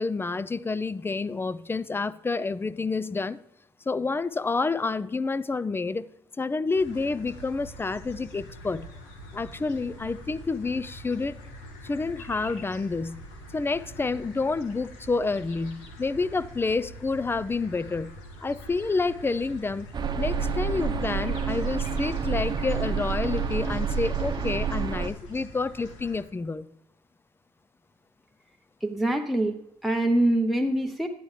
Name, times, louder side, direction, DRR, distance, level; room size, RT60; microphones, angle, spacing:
voice 1, 0.0-3.4 3.9-6.1 6.4-8.9 9.3-11.4 11.8-13.2 13.5-18.1 18.4-19.9 20.2-26.7, left 3 dB, 20° left, 0.5 m, -29 dB
sound 1, 6.7-26.3, equal, 90° left, 1.5 m, -45 dB
sound 2, 19.9-25.1, right 6 dB, 45° right, 0.9 m, -28 dB
voice 2, 28.8-31.1, right 1 dB, ahead, 0.9 m, -25 dB
11.0 x 9.9 x 3.2 m
supercardioid pair, 60°, 11 cm